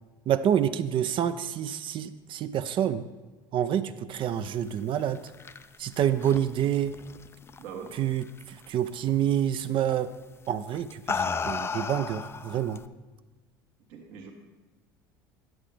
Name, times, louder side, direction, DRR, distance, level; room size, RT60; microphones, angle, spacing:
voice 1, 0.3-3.0 3.5-5.2 5.8-6.9 8.0-10.1 10.5-12.8, right 10 dB, 45° right, 11 dB, 0.5 m, -27 dB
sound 1, 5.0-7.9 8.2-8.6 9.9-10.1 10.7-12.9, left 5 dB, 20° left, 0.4 m, -34 dB
voice 2, 7.6-8.0 13.9-14.3, right 6 dB, 65° right, 2 dB, 1.4 m, -41 dB
10.5 x 7.5 x 3.3 m, 1.3 s
hypercardioid pair, 75°, 12 cm